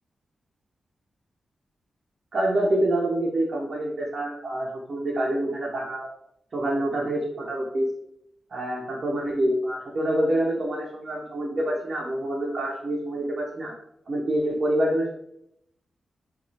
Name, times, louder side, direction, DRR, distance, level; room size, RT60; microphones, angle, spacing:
voice 1, 2.3-6.1 6.5-7.9 8.5-13.7 14.1-15.1, right 1 dB, 45° right, -3 dB, 0.5 m, -26 dB
3.0 x 2.3 x 2.7 m, 0.76 s
wide cardioid pair, 135°, 0 cm